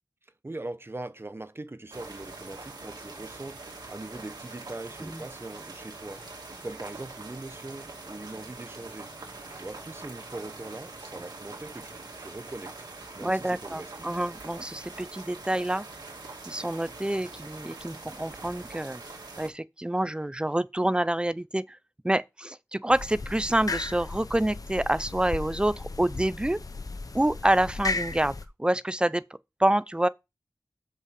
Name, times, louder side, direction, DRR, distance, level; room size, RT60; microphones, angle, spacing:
voice 1, 0.4-6.2 6.6-9.1 9.5-12.7 13.1-14.1, right 2 dB, 35° right, 0.8 m, -41 dB
sound 1, 1.9-19.5, right 3 dB, 90° right, 2.2 m, -43 dB
voice 2, 13.2-15.8 16.5-19.0 19.4-21.8 22.0-26.6 27.1-29.2 29.6-30.1, right 1 dB, 15° right, 0.5 m, -27 dB
sound 2, 22.9-28.4, left 3 dB, 60° left, 0.9 m, -35 dB
7.2 x 5.5 x 4.9 m
wide cardioid pair, 60°, 7 cm